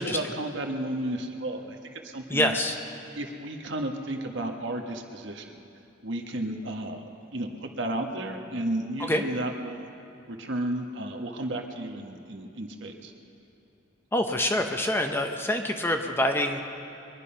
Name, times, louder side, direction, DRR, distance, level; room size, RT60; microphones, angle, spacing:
voice 1, 0.0-1.8 2.0-2.6 3.1-5.6 6.0-7.0 7.3-9.9 10.3-13.1, right 1 dB, 65° right, 3 dB, 1.4 m, -33 dB
voice 2, 2.3-2.8 9.0-9.2 14.1-16.6, left 1 dB, 10° left, 4 dB, 0.7 m, -26 dB
22.5 x 10.5 x 5.7 m, 2.8 s
head